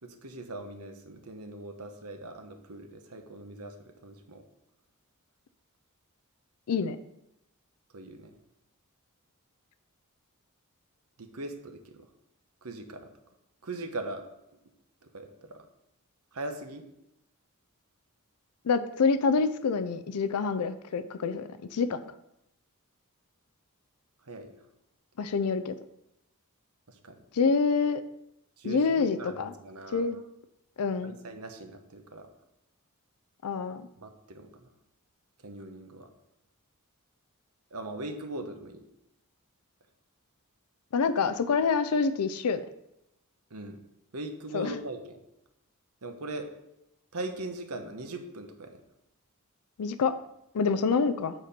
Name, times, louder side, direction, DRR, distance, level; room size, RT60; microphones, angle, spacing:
voice 1, 0.0-4.4 7.9-8.3 11.2-12.0 12.6-13.1 13.6-14.2 15.0-15.6 16.3-16.8 24.3-24.5 26.9-27.2 28.6-30.0 31.0-32.3 34.0-34.7 35.4-36.1 37.7-38.8 43.5-43.8 44.1-45.2 46.0-46.5 47.1-48.8, right 2 dB, 90° right, 5 dB, 1.0 m, -40 dB
voice 2, 18.6-22.0 25.2-25.7 27.3-28.0 28.6-29.5 29.9-30.2 30.8-31.2 33.4-33.8 40.9-42.6 44.5-44.8 49.8-50.1 50.5-51.3, left 5 dB, 90° left, 11 dB, 0.5 m, -26 dB
7.9 x 4.3 x 5.1 m, 0.85 s
head